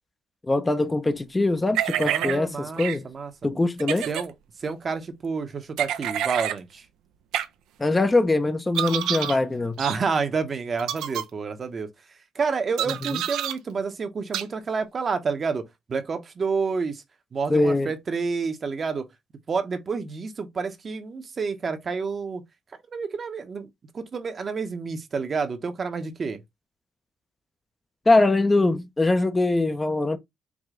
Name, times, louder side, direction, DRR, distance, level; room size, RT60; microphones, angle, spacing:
voice 1, 0.4-3.1 3.4-4.1 7.8-9.8 13.1-13.2 17.5-17.9 28.1-30.2, left 2 dB, 20° left, 0.5 m, -22 dB
sound 1, 1.7-2.4 2.8-3.0 3.8-4.3 5.8-6.6 7.3-7.5 8.7-9.4 9.8-10.0 10.8-11.2 12.8-13.5 14.3-14.4, right 11 dB, 90° right, 0.5 m, -27 dB
voice 2, 2.0-3.3 4.1-4.3 4.6-6.8 9.8-11.9 12.3-17.0 17.3-19.1 19.5-22.4 22.9-23.7 23.9-26.4, right 5 dB, 40° right, 0.8 m, -29 dB
4.8 x 2.2 x 3.6 m
cardioid pair, 90°, 0 cm